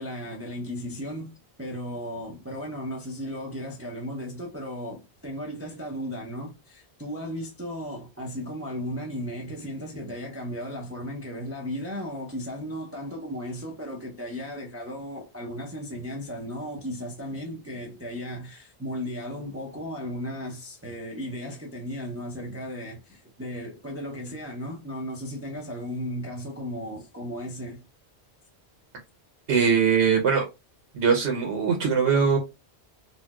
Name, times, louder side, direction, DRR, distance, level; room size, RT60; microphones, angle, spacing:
voice 1, 0.0-27.8, equal, 20° right, 0.4 m, -35 dB
voice 2, 29.5-30.4 30.9-32.4, right 6 dB, 90° right, 1.0 m, -21 dB
4.1 x 2.1 x 2.2 m
omnidirectional pair, 1.1 m